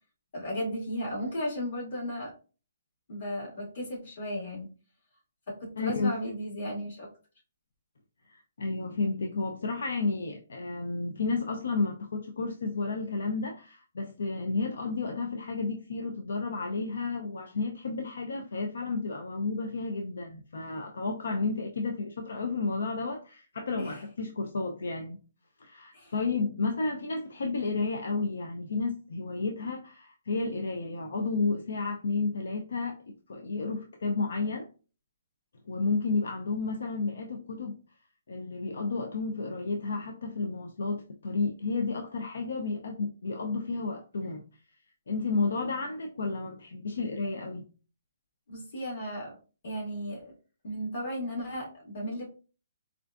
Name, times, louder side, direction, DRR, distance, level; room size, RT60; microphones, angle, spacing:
voice 1, 0.3-2.3 3.1-4.7 5.5-7.1 23.8-24.0 25.9-26.1 48.5-49.4 49.6-50.3 50.6-52.3, equal, 45° left, 1.9 m, -35 dB
voice 2, 5.8-6.1 8.3-25.2 25.6-34.7 35.7-37.8 38.3-44.4 45.1-47.6, left 3 dB, 75° left, 0.5 m, -32 dB
4.4 x 2.4 x 2.4 m
hypercardioid pair, 170°, 0 cm